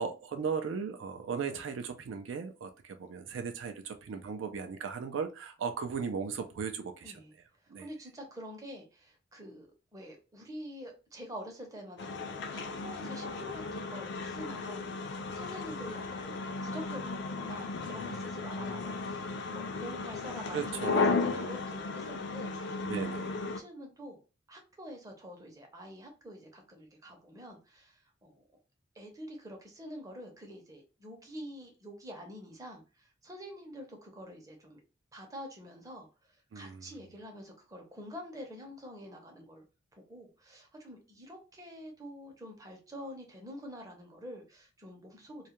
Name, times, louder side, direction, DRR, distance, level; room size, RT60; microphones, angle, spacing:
voice 1, 0.0-7.2 7.7-7.9 20.5-21.1 21.4-21.5 22.8-23.3 36.5-37.0, right 6 dB, 80° right, 0.4 m, -37 dB
voice 2, 7.0-7.3 7.6-9.7 9.9-19.3 19.5-23.0 23.3-24.2 24.5-28.4 28.9-34.8 35.1-39.6 39.9-45.5, equal, 20° right, 0.6 m, -47 dB
sound 1, 12.0-23.6, left 3 dB, 60° left, 0.4 m, -35 dB
2.3 x 2.1 x 2.9 m
head